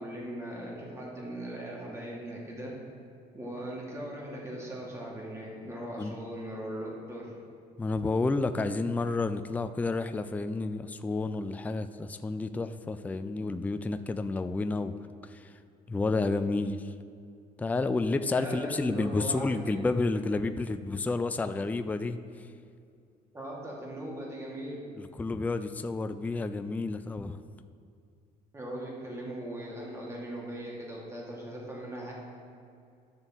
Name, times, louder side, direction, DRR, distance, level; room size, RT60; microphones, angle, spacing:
voice 1, 0.0-2.7 3.3-7.3 18.3-19.7 23.3-24.8 28.5-32.1, right 1 dB, 15° right, -4 dB, 1.9 m, -39 dB
voice 2, 7.8-15.0 15.2-15.5 15.9-16.9 17.6-22.5 25.0-27.4, left 3 dB, 10° left, 9 dB, 0.3 m, -30 dB
12.5 x 6.7 x 3.6 m, 2.4 s
cardioid pair, 110°, 17 cm